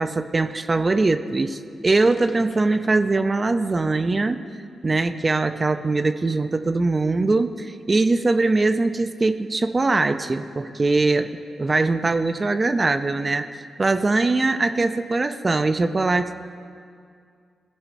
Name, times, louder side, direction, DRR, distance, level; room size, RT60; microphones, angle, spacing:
voice 1, 0.0-4.4 4.8-11.3 11.6-13.5 13.8-16.3, right 3 dB, 35° right, 10 dB, 0.4 m, -21 dB
sound 1, 1.9-4.0, left 3 dB, 55° left, 1.0 m, -46 dB
16.0 x 5.5 x 4.6 m, 2.3 s
cardioid pair, 75°, 0 cm